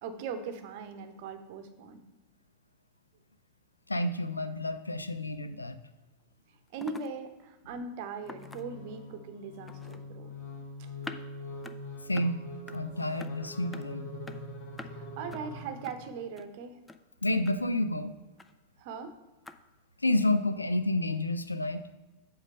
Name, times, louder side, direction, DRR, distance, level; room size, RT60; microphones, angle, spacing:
voice 1, 0.0-2.0 6.7-10.3 10.8-10.9 14.9-16.8 18.8-19.1, right 5 dB, 50° right, 8 dB, 0.9 m, -40 dB
voice 2, 3.9-5.8 12.1-12.4 12.7-14.1 17.2-18.1 20.0-21.8, left 1 dB, 80° left, 11 dB, 0.4 m, -29 dB
sound 1, 5.9-6.0 6.2-6.3 6.7-7.1 7.4-7.5 8.3-8.9 9.7-10.0 11.0-11.2 11.6-11.8 12.1-12.3 12.7-12.8 13.2-13.3 13.7-13.8 14.3-14.4 14.8-14.9 15.3-15.4 15.8-16.0 16.4-16.5 16.9-17.0 17.4-17.5 18.4-18.5 19.4-19.6, left 3 dB, 10° left, 0.4 m, -45 dB
sound 2, 8.2-16.2, left 2 dB, 50° left, 1.6 m, -43 dB
8.1 x 3.8 x 5.5 m, 1.1 s
figure-of-eight pair, 90°, 0 cm